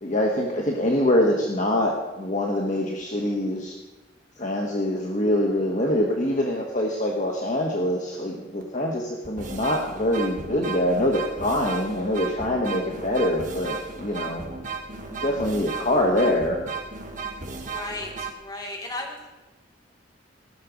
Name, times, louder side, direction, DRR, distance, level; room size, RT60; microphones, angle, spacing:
voice 1, 0.0-3.7 4.4-14.4 15.2-16.6, left 1 dB, 40° left, 0 dB, 1.4 m, -24 dB
sound 1, 8.6-8.7 9.2-18.3, right 4 dB, 45° right, 1.5 m, -35 dB
voice 2, 17.6-19.3, left 2 dB, 20° left, -1 dB, 2.7 m, -35 dB
16.0 x 6.6 x 8.3 m, 1.2 s
head